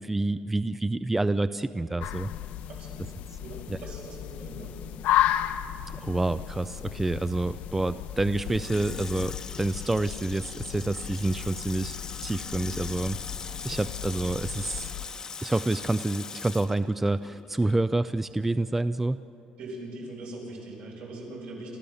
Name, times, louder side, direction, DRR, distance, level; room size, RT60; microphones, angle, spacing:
voice 1, 0.0-2.3 3.7-3.8 5.9-13.2 13.6-14.9 15.4-19.2, right 2 dB, 10° right, 13 dB, 0.4 m, -28 dB
sound 1, 2.0-15.1, left 11 dB, 80° left, 0.7 m, -34 dB
voice 2, 2.7-3.1 3.4-4.7 19.6-21.8, right 2 dB, 75° right, -2 dB, 7.0 m, -41 dB
Water tap faucet / Sink (filling or washing), 8.2-17.9 18.2-18.3, left 5 dB, 30° left, 0.8 m, -41 dB
29.0 x 14.0 x 7.1 m, 2.8 s
cardioid pair, 135°, 2 cm